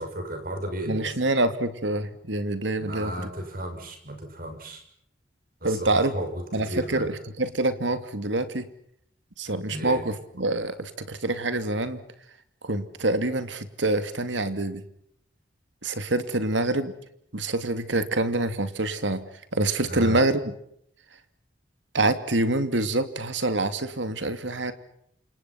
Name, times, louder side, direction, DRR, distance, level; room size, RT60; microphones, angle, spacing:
voice 1, 0.0-1.2 2.8-4.8 5.6-7.1 9.7-10.0 19.9-20.2, right 1 dB, 50° right, 6 dB, 6.9 m, -34 dB
voice 2, 0.9-3.1 5.6-6.1 6.5-8.7 9.4-12.0 12.6-14.8 15.8-16.9 17.3-19.2 19.5-20.4 21.9-24.7, right 2 dB, 85° right, 10 dB, 2.6 m, -26 dB
29.5 x 27.0 x 5.9 m, 0.71 s
head